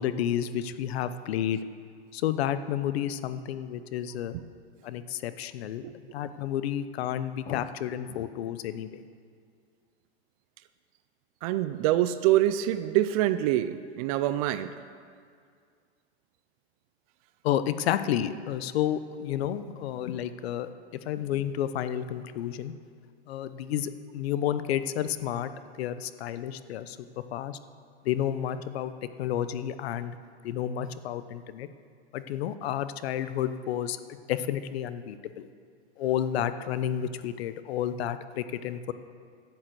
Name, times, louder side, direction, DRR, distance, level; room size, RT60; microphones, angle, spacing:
voice 1, 0.0-1.6 2.1-4.3 4.8-5.8 6.1-9.0 17.4-20.7 21.1-22.7 23.3-25.5 25.8-27.0 27.3-27.6 28.1-28.9 29.2-30.1 30.4-31.7 32.1-34.0 34.3-35.5 36.0-38.9, left 10 dB, 65° left, 12 dB, 0.8 m, -30 dB
voice 2, 11.4-14.7, right 13 dB, 35° right, 13 dB, 0.4 m, -25 dB
12.5 x 7.6 x 7.6 m, 2.1 s
hypercardioid pair, 135°, 34 cm